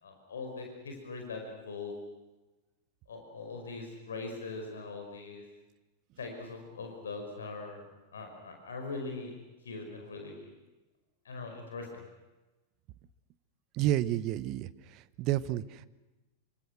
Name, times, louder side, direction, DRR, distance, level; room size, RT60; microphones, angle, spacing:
voice 1, 0.0-1.9 3.1-5.4 6.2-7.9 8.1-9.4 9.6-10.5 11.3-11.9, left 3 dB, 70° left, 3 dB, 5.2 m, -41 dB
voice 2, 13.7-14.7 15.2-15.9, right 13 dB, 40° right, 18 dB, 1.1 m, -30 dB
27.5 x 25.5 x 6.2 m, 1.1 s
figure-of-eight pair, 90°, 0 cm